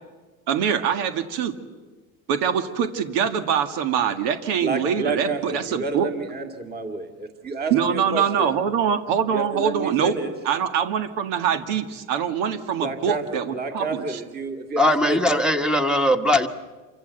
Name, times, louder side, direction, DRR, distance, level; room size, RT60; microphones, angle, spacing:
voice 1, 0.5-1.6 2.3-6.1 7.7-10.2 10.4-14.2, right 8 dB, 75° right, 8 dB, 2.0 m, -24 dB
voice 2, 4.6-8.6 9.3-10.3 12.8-15.6, right 3 dB, 25° right, 5 dB, 2.2 m, -30 dB
voice 3, 14.8-16.5, left 1 dB, ahead, 8 dB, 1.3 m, -20 dB
27.5 x 24.5 x 8.0 m, 1.3 s
cardioid pair, 150°, 40 cm